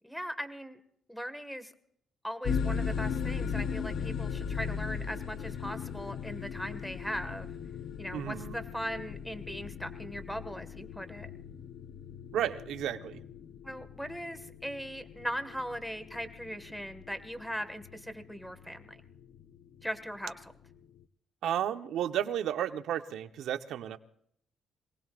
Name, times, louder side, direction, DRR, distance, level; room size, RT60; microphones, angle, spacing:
voice 1, 0.0-0.8 1.1-1.7 2.2-7.5 8.0-11.3 13.6-19.0 19.8-20.5, equal, ahead, 10 dB, 1.7 m, -39 dB
sound 1, 2.4-21.0, left 6 dB, 65° left, 0.8 m, -38 dB
voice 2, 8.1-8.5 12.3-13.2 21.4-24.0, right 10 dB, 80° right, 8 dB, 1.1 m, -32 dB
26.5 x 18.5 x 2.5 m, 0.69 s
cardioid pair, 90°, 0 cm